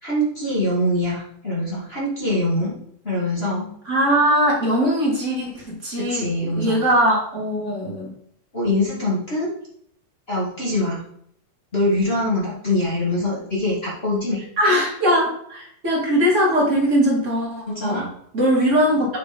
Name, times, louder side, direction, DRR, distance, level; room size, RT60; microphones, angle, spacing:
voice 1, 0.0-2.8 3.0-3.7 6.1-6.8 8.5-9.5 10.3-11.0 11.7-14.4 17.7-18.1, left 1 dB, 25° left, -6 dB, 1.6 m, -23 dB
voice 2, 3.9-8.1 14.6-18.1 18.3-19.1, equal, 25° right, -3 dB, 1.9 m, -20 dB
7.8 x 5.0 x 5.2 m, 0.67 s
omnidirectional pair, 4.1 m